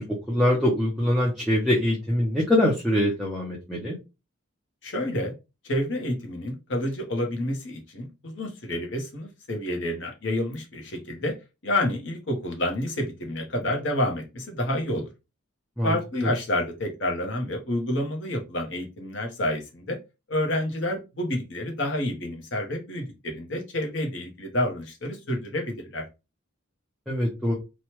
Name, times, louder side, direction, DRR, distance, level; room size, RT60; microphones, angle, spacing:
voice 1, 0.0-3.9 15.8-15.9 27.1-27.5, left 1 dB, ahead, -5 dB, 0.6 m, -23 dB
voice 2, 4.8-5.3 5.6-11.3 11.6-15.1 15.8-20.0 20.3-26.0, left 1 dB, 55° left, 3 dB, 0.9 m, -29 dB
3.0 x 2.3 x 3.0 m, 0.26 s
head